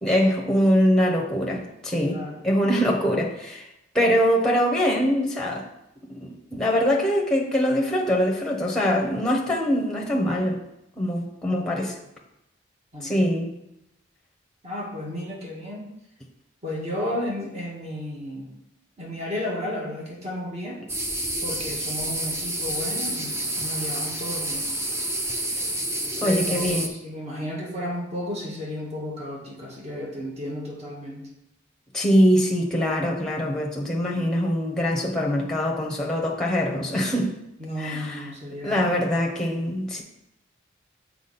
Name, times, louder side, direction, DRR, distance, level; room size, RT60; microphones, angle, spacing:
voice 1, 0.0-3.7 3.9-5.6 6.1-10.6 11.0-11.9 13.0-13.5 26.2-26.9 31.9-37.3 37.8-38.2 38.6-40.0, equal, 5° left, 0 dB, 1.0 m, -23 dB
voice 2, 2.0-2.4 11.5-11.9 12.9-13.3 14.6-15.9 16.6-18.5 19.0-20.8 21.4-24.7 26.2-31.3 37.6-38.9, left 1 dB, 35° right, -3 dB, 1.7 m, -33 dB
sound 1, 20.9-26.9, right 1 dB, 15° right, 0.5 m, -29 dB
7.2 x 4.8 x 4.2 m, 0.85 s
head